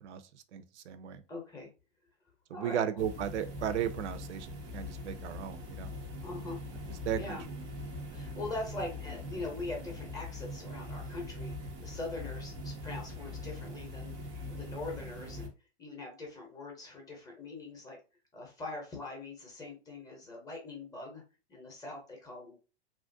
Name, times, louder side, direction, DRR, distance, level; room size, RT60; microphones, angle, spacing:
voice 1, 0.5-1.2 2.5-5.9 7.1-7.4, right 9 dB, 85° right, 0.6 m, -35 dB
voice 2, 1.3-1.7 2.5-3.1 6.2-6.6 7.2-7.4 8.1-15.5 15.8-18.0 18.3-21.2 21.5-22.6, left 2 dB, 10° left, 0.7 m, -42 dB
sound 1, 3.0-15.5, left 1 dB, 15° right, 0.3 m, -42 dB
2.9 x 2.4 x 2.6 m
hypercardioid pair, 150°, 34 cm